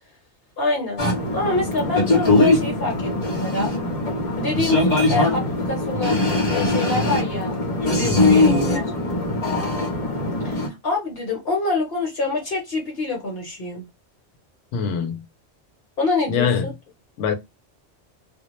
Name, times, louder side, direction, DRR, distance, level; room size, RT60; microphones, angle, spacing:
voice 1, 0.6-1.0 1.3-3.7 4.3-7.5 7.8-8.8 10.4-13.8 16.0-16.7, left 3 dB, 60° left, 1.0 m, -26 dB
sound 1, 1.0-10.7, left 2 dB, 35° left, 0.8 m, -21 dB
voice 2, 14.7-15.2 16.3-16.7 17.2-17.3, left 6 dB, 85° left, 0.9 m, -23 dB
2.2 x 2.1 x 2.9 m
omnidirectional pair, 1.2 m